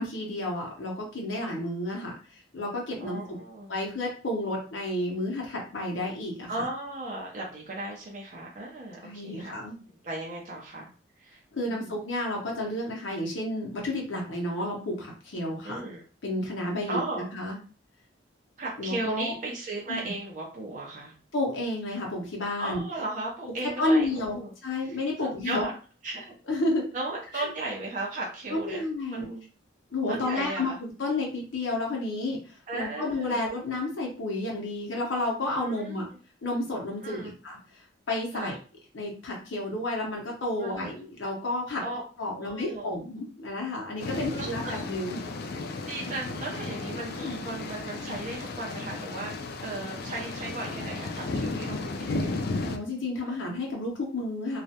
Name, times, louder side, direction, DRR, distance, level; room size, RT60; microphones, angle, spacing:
voice 1, 0.0-3.2 3.7-6.7 9.0-9.8 11.5-15.8 16.2-17.6 18.8-19.3 19.9-20.1 21.3-22.8 23.6-25.7 26.5-26.9 27.3-27.5 28.5-29.3 29.9-32.4 32.7-36.1 36.4-37.6 38.1-38.5 38.9-41.8 42.2-45.2 47.2-47.4 52.6-54.6, left 2 dB, 85° left, -1 dB, 0.7 m, -31 dB
voice 2, 3.0-3.7 6.5-9.6 9.8-10.9 11.2-11.4 11.7-12.0 15.6-16.0 16.9-17.3 18.6-21.1 22.6-24.5 24.8-25.7 26.0-26.3 26.9-28.8 29.1-29.5 30.1-30.8 32.7-33.4 35.4-36.1 37.0-37.3 38.3-38.6 40.6-40.9 41.8-42.0 42.3-42.9 44.1-44.8 45.8-52.5, right 2 dB, 40° right, -3 dB, 0.6 m, -36 dB
sound 1, 44.0-52.8, left 3 dB, 55° left, 0.3 m, -34 dB
2.3 x 2.0 x 2.7 m, 0.37 s
head